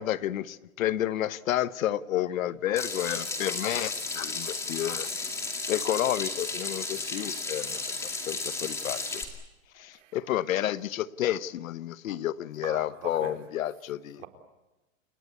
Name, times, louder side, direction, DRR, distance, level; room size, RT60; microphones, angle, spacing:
voice 1, 0.0-5.1 5.7-9.2 9.8-14.2, left 12 dB, 75° left, 1.2 m, -30 dB
Water tap faucet / Sink (filling or washing), 2.8-9.2, left 3 dB, 5° left, 2.3 m, -33 dB
voice 2, 9.7-10.2 12.6-13.8 14.2-14.3, right 9 dB, 65° right, 4.3 m, -44 dB
29.5 x 18.0 x 8.4 m
supercardioid pair, 175°, 40 cm